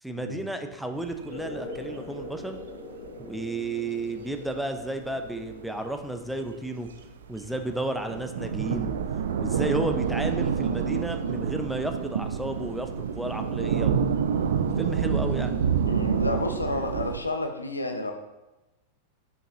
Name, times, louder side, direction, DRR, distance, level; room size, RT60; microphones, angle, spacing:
voice 1, 0.0-2.6 3.2-6.9 7.3-9.0 9.4-12.9 13.1-14.0 14.8-15.6, right 2 dB, ahead, 6 dB, 0.5 m, -32 dB
sound 1, 1.0-3.5 3.7-3.8 4.0-5.8 6.1-6.2 6.4-17.2, right 7 dB, 65° right, 0.4 m, -28 dB
sound 2, 1.3-8.4, left 2 dB, 50° left, 0.9 m, -43 dB
voice 2, 15.9-18.1, left 2 dB, 80° left, 5 dB, 0.6 m, -30 dB
6.3 x 5.2 x 2.9 m, 1.0 s
figure-of-eight pair, 90°, 0 cm